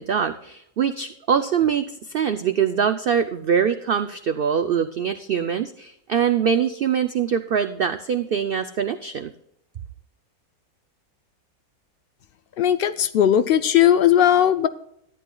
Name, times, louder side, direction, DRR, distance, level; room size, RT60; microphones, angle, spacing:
voice 1, 0.0-9.3, right 7 dB, 85° right, 10 dB, 0.5 m, -23 dB
voice 2, 12.6-14.7, left 10 dB, 80° left, 12 dB, 0.5 m, -17 dB
13.5 x 10.0 x 2.3 m, 0.73 s
omnidirectional pair, 1.6 m